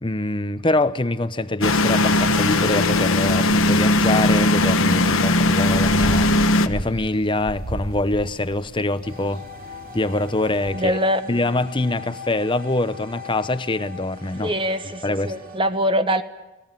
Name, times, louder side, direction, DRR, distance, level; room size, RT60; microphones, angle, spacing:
voice 1, 0.0-9.4 9.9-11.0 11.3-14.5 15.0-15.3, left 2 dB, 20° left, 0.9 m, -24 dB
sound 1, 1.6-6.7, left 2 dB, 65° left, 1.2 m, -18 dB
sound 2, 3.5-10.7, equal, 75° right, 4.0 m, -36 dB
sound 3, 9.0-15.6, left 4 dB, 40° right, 3.3 m, -40 dB
voice 2, 10.7-11.3 14.4-16.2, equal, 25° right, 1.3 m, -23 dB
29.0 x 20.0 x 9.1 m
head